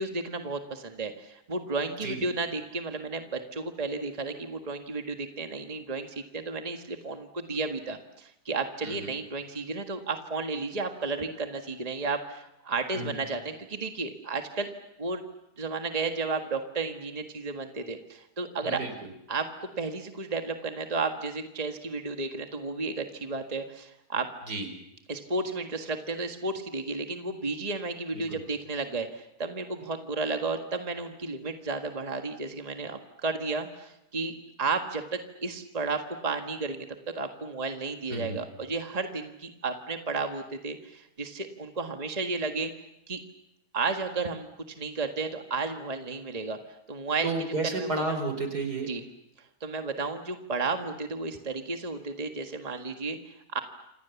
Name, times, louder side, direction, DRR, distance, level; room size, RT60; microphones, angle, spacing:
voice 1, 0.0-14.7 15.0-15.2 15.6-18.8 19.3-24.3 25.1-36.9 37.1-42.7 43.1-43.2 43.7-44.5 44.8-46.6 46.9-47.3 47.7-48.2 48.9-49.0 49.6-53.6, right 3 dB, 25° right, 5 dB, 1.7 m, -33 dB
voice 2, 8.8-9.1 12.9-13.2 18.6-19.1 24.5-24.7 28.1-28.4 38.1-38.4 47.2-48.9, right 2 dB, 70° right, 7 dB, 5.0 m, -32 dB
28.5 x 27.0 x 7.2 m, 0.82 s
omnidirectional pair, 1.7 m